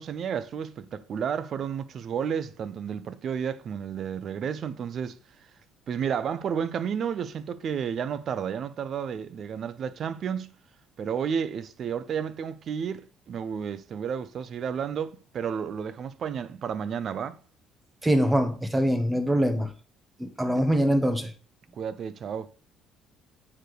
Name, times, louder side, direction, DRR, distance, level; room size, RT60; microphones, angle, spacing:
voice 1, 0.0-5.2 5.9-10.5 11.0-17.4 21.8-22.5, right 7 dB, 50° right, 0.7 m, -31 dB
voice 2, 18.0-19.7 20.2-21.3, equal, 10° right, 1.4 m, -23 dB
9.7 x 4.6 x 4.9 m
cardioid pair, 115°, 0 cm